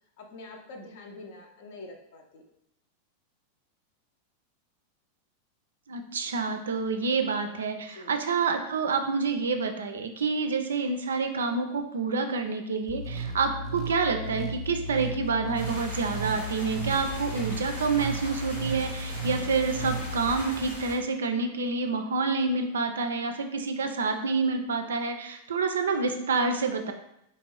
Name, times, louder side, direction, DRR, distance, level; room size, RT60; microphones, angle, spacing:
voice 1, 0.2-2.4 7.9-8.1 12.1-12.2, left 2 dB, 50° left, 3 dB, 0.6 m, -45 dB
voice 2, 5.9-26.9, right 4 dB, 65° right, 6 dB, 0.4 m, -28 dB
sound 1, 12.9-20.4, right 2 dB, 25° right, 0.6 m, -35 dB
sound 2, 15.5-20.9, left 1 dB, 80° left, 1.3 m, -40 dB
3.4 x 2.8 x 3.0 m, 0.80 s
figure-of-eight pair, 90°, 0 cm